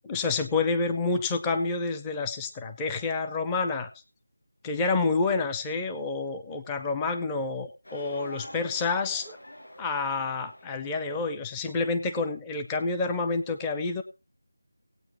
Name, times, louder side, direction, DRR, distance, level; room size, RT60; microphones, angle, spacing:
voice 1, 0.1-3.9 4.6-9.4 9.8-14.0, left 3 dB, 10° left, 8 dB, 0.5 m, -28 dB
sound 1, 7.8-11.8, equal, 85° left, 6.6 m, -46 dB
18.5 x 8.7 x 3.0 m, 0.31 s
figure-of-eight pair, 175°, 0 cm